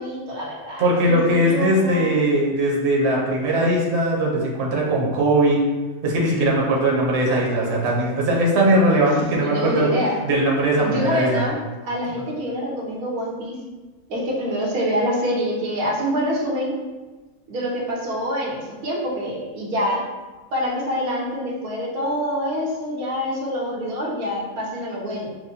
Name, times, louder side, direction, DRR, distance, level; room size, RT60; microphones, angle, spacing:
voice 1, 0.0-2.1 9.1-10.2 10.8-11.6 11.8-13.6 14.1-16.8 17.5-20.0 20.5-25.3, equal, 90° right, -3 dB, 1.4 m, -26 dB
voice 2, 0.8-5.6 6.0-9.9 10.2-11.4, right 1 dB, 55° right, -3 dB, 1.0 m, -20 dB
6.2 x 2.2 x 2.8 m, 1.2 s
omnidirectional pair, 1.5 m